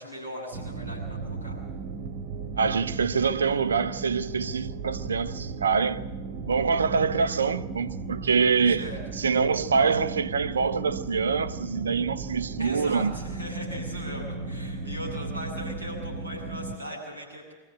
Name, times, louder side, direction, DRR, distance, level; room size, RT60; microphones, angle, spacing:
voice 1, 0.0-1.6 8.7-9.0 12.6-17.5, equal, 85° left, 7.1 m, -39 dB
sound 1, 0.5-16.8, right 4 dB, 50° right, 1.6 m, -36 dB
voice 2, 2.6-6.1 6.4-8.9 9.1-13.1, right 5 dB, 70° right, 0.8 m, -25 dB
23.5 x 14.5 x 7.9 m
figure-of-eight pair, 90°, 0 cm